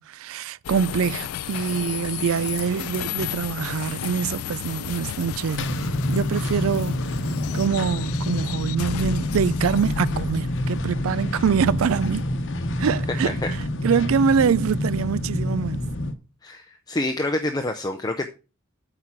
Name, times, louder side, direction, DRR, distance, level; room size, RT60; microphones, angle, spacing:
voice 1, 0.0-5.7 6.1-7.0 7.5-12.3 12.8-13.4 13.8-15.9, right 6 dB, 70° right, 0.4 m, -24 dB
sound 1, 0.6-14.0, left 9 dB, 85° left, 0.4 m, -34 dB
sound 2, 5.6-16.1, left 1 dB, 60° left, 0.9 m, -27 dB
voice 2, 16.4-18.3, left 1 dB, 20° left, 0.6 m, -27 dB
8.4 x 4.9 x 5.9 m
head